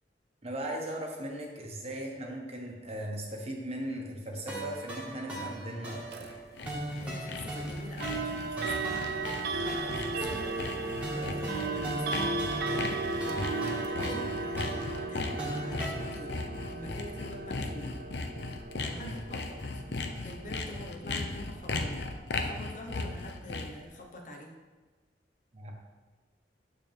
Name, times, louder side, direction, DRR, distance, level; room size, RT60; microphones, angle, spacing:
voice 1, 0.4-6.4 18.9-19.2 25.5-25.7, right 1 dB, 35° right, 0 dB, 1.3 m, -38 dB
sound 1, 4.5-15.9, right 1 dB, 10° right, 1.9 m, -39 dB
Sawing, 6.0-23.8, left 3 dB, 70° left, 0.7 m, -37 dB
sound 2, 6.1-6.3 8.0-20.8, right 3 dB, 65° right, 0.5 m, -36 dB
voice 2, 7.0-9.3 9.7-16.3 16.7-18.0 18.8-19.8 20.2-21.9 22.4-24.5, left 1 dB, 45° left, 1 dB, 1.1 m, -45 dB
9.0 x 6.8 x 3.5 m, 1.3 s
head